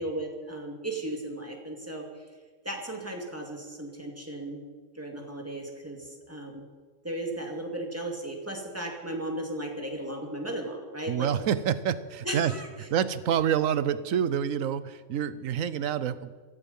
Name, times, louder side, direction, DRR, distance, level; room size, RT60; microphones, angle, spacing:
voice 1, 0.0-2.0 2.6-4.6 4.9-6.6 7.0-11.3 12.2-12.7, right 1 dB, 10° right, 1 dB, 2.5 m, -35 dB
voice 2, 11.1-12.5 12.9-16.3, right 9 dB, 70° right, 14 dB, 1.1 m, -27 dB
16.5 x 15.5 x 5.5 m, 1.4 s
omnidirectional pair, 1.5 m